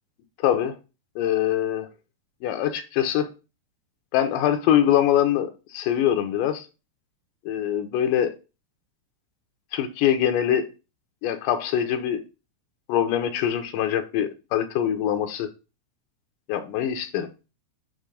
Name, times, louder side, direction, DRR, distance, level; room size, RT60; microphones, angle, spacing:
voice 1, 0.4-0.7 1.2-1.9 2.4-3.3 4.1-6.7 7.5-8.3 9.7-10.7 11.2-12.2 12.9-15.5 16.5-17.3, left 10 dB, 90° left, 2.4 m, -23 dB
7.9 x 3.0 x 5.0 m
omnidirectional pair, 3.8 m